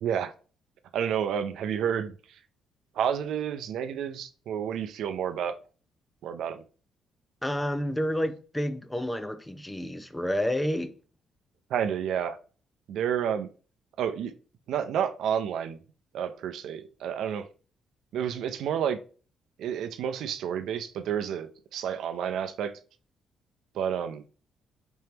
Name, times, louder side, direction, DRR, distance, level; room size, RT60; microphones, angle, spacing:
voice 1, 0.0-0.3 0.9-2.4 2.9-5.5 6.2-6.6 11.7-12.4 12.9-13.5 14.0-14.3 14.7-15.8 16.1-17.5 18.1-19.0 19.6-22.7 23.7-24.2, right 8 dB, 80° right, 0.4 m, -30 dB
voice 2, 7.4-11.0, equal, 10° left, 0.5 m, -29 dB
4.4 x 3.3 x 2.9 m
cardioid pair, 90°, 0 cm